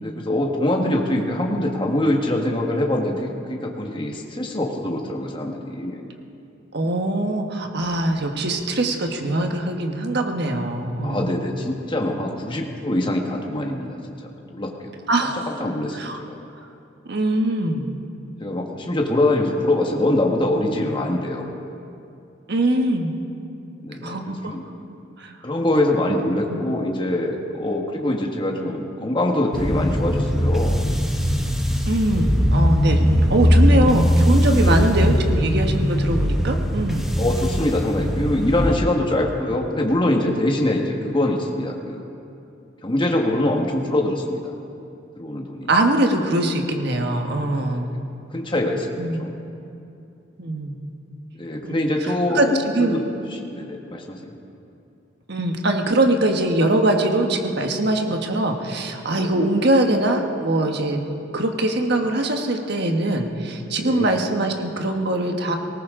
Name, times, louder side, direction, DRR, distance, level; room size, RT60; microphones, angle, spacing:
voice 1, 0.0-6.0 11.0-14.0 14.2-14.9 15.2-16.4 18.4-21.5 23.8-24.6 25.4-30.8 34.5-34.8 35.1-35.2 37.2-42.1 42.8-44.4 45.2-45.7 47.4-48.0 48.3-49.4 51.3-53.0 53.3-54.4 59.1-59.4 63.8-64.1, left 1 dB, 25° left, 1 dB, 1.5 m, -24 dB
voice 2, 6.7-11.4 15.1-15.4 15.9-16.2 17.1-17.9 22.5-23.2 24.0-24.5 25.2-25.3 26.5-26.6 31.9-33.0 33.3-37.1 45.7-48.0 49.0-49.2 50.4-50.9 51.6-51.8 52.3-53.0 55.3-61.0 61.3-65.6, right 1 dB, 60° right, 4 dB, 1.4 m, -22 dB
sound 1, 29.5-38.8, equal, ahead, 1.1 m, -20 dB
19.0 x 19.0 x 3.8 m, 2.6 s
head